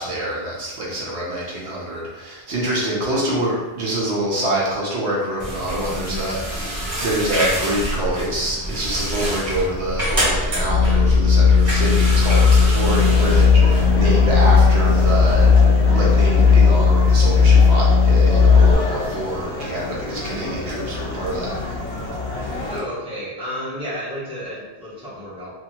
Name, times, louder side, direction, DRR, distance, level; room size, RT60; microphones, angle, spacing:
voice 1, 0.0-15.5 15.9-21.5, right 1 dB, 70° right, -5 dB, 1.0 m, -26 dB
voice 2, 3.1-3.4 22.7-25.6, equal, 5° right, -9 dB, 0.9 m, -32 dB
sound 1, 5.4-15.6, equal, 40° right, 0.9 m, -26 dB
sound 2, 10.7-18.7, left 5 dB, 65° left, 0.4 m, -14 dB
sound 3, 13.0-22.8, left 2 dB, 45° left, 0.8 m, -29 dB
2.8 x 2.6 x 2.7 m, 1.1 s
omnidirectional pair, 1.2 m